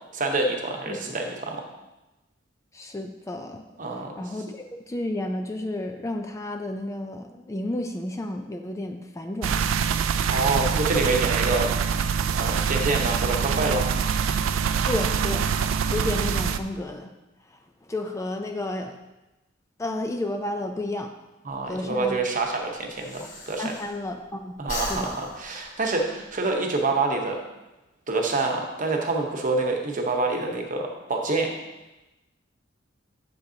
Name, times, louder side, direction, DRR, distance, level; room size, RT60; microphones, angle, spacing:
voice 1, 0.1-1.6 3.8-4.3 10.3-11.7 12.3-13.9 21.4-23.7 24.6-27.4 28.1-31.5, right 3 dB, 45° right, 2 dB, 1.0 m, -26 dB
voice 2, 2.7-3.6 4.2-9.7 14.9-15.5 15.9-17.1 17.8-19.0 19.8-21.1 21.7-22.2 23.6-25.1, left 1 dB, 15° left, 4 dB, 0.4 m, -31 dB
sound 1, 9.4-16.6, right 6 dB, 80° right, 0.4 m, -24 dB
Breathing, 21.5-24.3 24.6-26.5, left 2 dB, 40° left, 1.6 m, -38 dB
7.7 x 7.2 x 2.8 m, 1.0 s
head